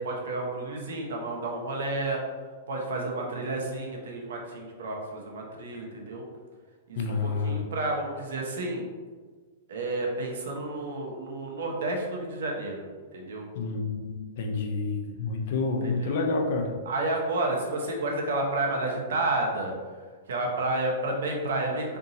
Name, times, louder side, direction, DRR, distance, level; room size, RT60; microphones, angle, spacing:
voice 1, 0.0-2.2 2.7-6.2 6.9-8.8 9.7-12.8 13.1-13.5 15.8-16.2 16.9-19.7 20.3-22.0, right 2 dB, 80° right, 0 dB, 1.0 m, -31 dB
voice 2, 7.0-7.6 13.5-16.7, left 3 dB, 60° left, 3 dB, 0.6 m, -29 dB
4.1 x 3.5 x 2.7 m, 1.5 s
supercardioid pair, 155°, 0 cm